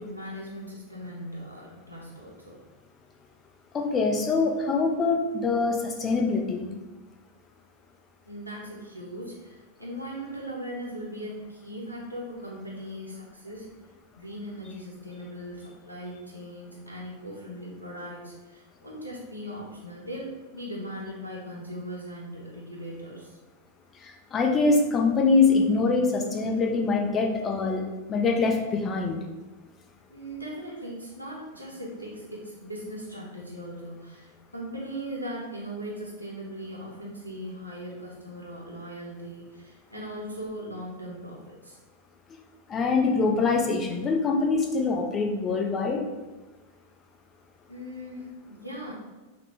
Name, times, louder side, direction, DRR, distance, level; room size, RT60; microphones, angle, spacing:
voice 1, 0.0-2.6 8.2-13.7 14.1-23.3 30.1-41.8 47.7-48.9, equal, 85° left, -5 dB, 0.7 m, -39 dB
voice 2, 3.7-6.6 24.0-27.8 28.1-29.2 42.7-46.0, left 4 dB, 25° left, 2 dB, 0.6 m, -24 dB
5.9 x 2.2 x 3.1 m, 1.2 s
figure-of-eight pair, 90°, 0 cm